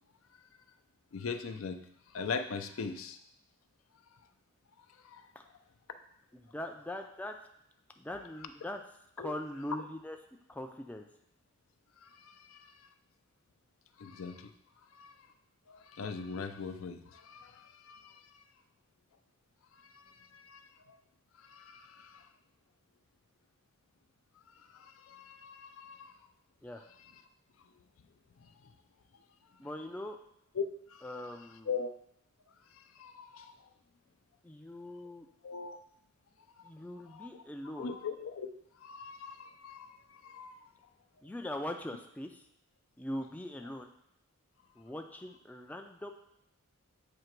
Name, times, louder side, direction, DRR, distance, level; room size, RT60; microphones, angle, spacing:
voice 1, 1.1-1.8 2.1-3.2 4.8-5.3 9.2-9.3 12.0-12.9 14.0-14.5 14.9-15.2 15.7-18.4 19.8-21.0 21.4-22.3 24.6-26.1 28.4-28.7 30.5-31.0 31.7-31.9 32.7-33.5 35.4-35.8 37.1-37.4 37.8-38.5 38.8-40.7, left 5 dB, 70° left, 8 dB, 0.5 m, -41 dB
voice 2, 6.3-7.4 8.0-8.8 9.2-10.2 10.5-11.1 26.6-26.9 29.6-30.2 31.0-31.7 34.4-35.3 36.6-38.0 41.2-42.4 43.0-43.9 44.8-46.1, left 1 dB, 5° left, 4 dB, 0.3 m, -41 dB
7.5 x 2.9 x 4.5 m, 0.76 s
head